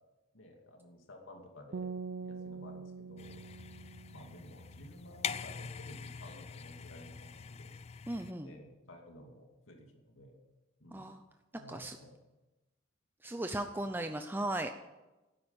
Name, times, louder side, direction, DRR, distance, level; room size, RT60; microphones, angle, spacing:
voice 1, 0.3-1.9 2.2-3.4 4.1-7.7 8.4-10.4 10.8-11.1 11.6-12.2 13.5-13.9, left 1 dB, 85° left, 2 dB, 2.5 m, -54 dB
sound 1, 1.7-4.9, right 4 dB, 60° right, 0.5 m, -44 dB
sound 2, 3.2-8.3, left 6 dB, 30° left, 0.4 m, -44 dB
voice 2, 8.1-8.5 10.9-11.2 11.7-12.0 13.2-14.7, right 1 dB, 10° right, 6 dB, 0.6 m, -37 dB
12.5 x 10.0 x 8.8 m, 1.1 s
head